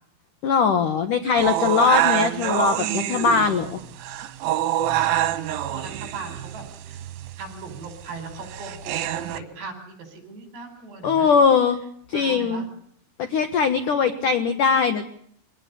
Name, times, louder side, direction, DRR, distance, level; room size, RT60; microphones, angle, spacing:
voice 1, 0.4-3.8 11.0-11.8 12.1-12.7 13.2-15.0, left 6 dB, 65° left, 8 dB, 2.1 m, -21 dB
sound 1, 1.4-9.4, right 12 dB, 80° right, 4.1 m, -26 dB
voice 2, 5.5-7.0 7.4-11.3 12.1-12.7, right 4 dB, 55° right, 7 dB, 6.9 m, -38 dB
25.0 x 18.5 x 8.5 m, 0.66 s
omnidirectional pair, 5.7 m